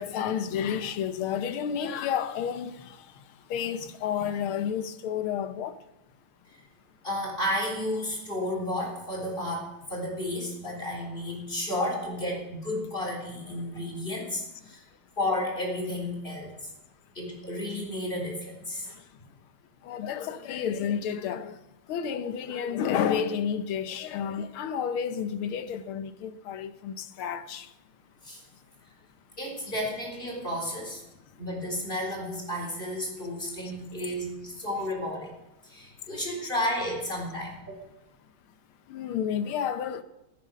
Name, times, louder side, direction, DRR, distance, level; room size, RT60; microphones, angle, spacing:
voice 1, 0.0-5.8 13.5-13.7 14.6-14.7 18.8-19.1 19.8-21.6 21.9-27.7 38.9-40.0, left 8 dB, 90° left, 1.8 m, -31 dB
voice 2, 7.0-14.8 15.2-16.6 17.1-18.9 28.2-28.4 29.4-31.0 31.4-35.3 35.6-37.8, left 1 dB, 25° left, 3.9 m, -32 dB
16.0 x 9.3 x 6.3 m
omnidirectional pair, 2.3 m